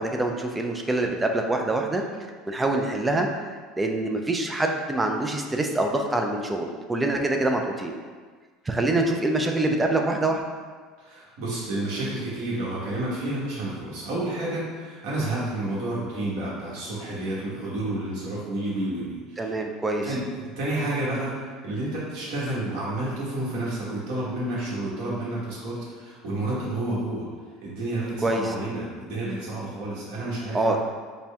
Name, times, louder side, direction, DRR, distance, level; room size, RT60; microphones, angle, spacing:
voice 1, 0.0-2.0 2.5-3.3 3.8-8.0 8.7-10.4 19.4-20.1 28.2-28.5 30.5-30.8, right 2 dB, 10° right, 3 dB, 0.3 m, -25 dB
voice 2, 11.0-19.6 20.0-27.3 27.6-30.8, right 1 dB, 70° right, -7 dB, 1.4 m, -30 dB
4.2 x 2.1 x 3.4 m, 1.5 s
cardioid pair, 140°, 0 cm